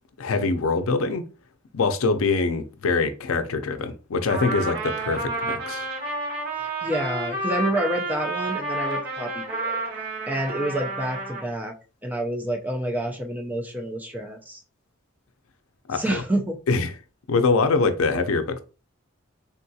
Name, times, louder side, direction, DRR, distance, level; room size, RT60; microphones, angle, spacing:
voice 1, 0.2-1.2 1.7-5.9 15.9-16.2 16.7-16.9 17.3-18.6, left 4 dB, 80° left, 0.5 m, -24 dB
Trumpet, 4.3-11.5, right 2 dB, 45° right, 1.6 m, -30 dB
voice 2, 6.6-9.8 10.3-11.7 12.0-14.6 15.9-16.6, right 1 dB, 10° right, 0.4 m, -28 dB
3.6 x 2.3 x 2.7 m
head